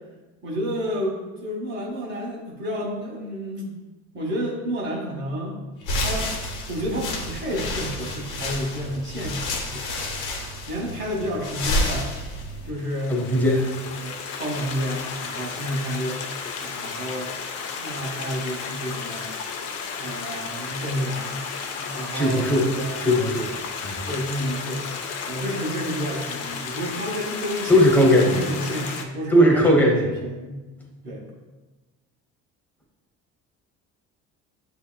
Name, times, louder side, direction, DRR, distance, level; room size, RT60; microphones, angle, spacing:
voice 1, 0.4-3.7 4.1-5.6 6.0-6.3 6.7-10.0 10.7-12.1 12.6-13.2 13.8-16.2 16.6-17.3 17.8-19.3 20.0-21.3 21.8-23.0 24.1-24.8 25.3-27.9 28.1-30.6 31.0-31.3, equal, 35° right, -1 dB, 1.2 m, -30 dB
sound 1, 5.8-12.7, left 1 dB, 85° left, 0.9 m, -29 dB
Stream, 12.7-29.0, left 5 dB, 55° left, 0.6 m, -33 dB
voice 2, 13.1-13.8 22.1-22.7 23.0-23.5 23.8-24.0 27.7-28.3 29.3-30.1, equal, 5° left, -2 dB, 0.9 m, -18 dB
8.2 x 2.9 x 2.3 m, 1.2 s
cardioid pair, 140°, 31 cm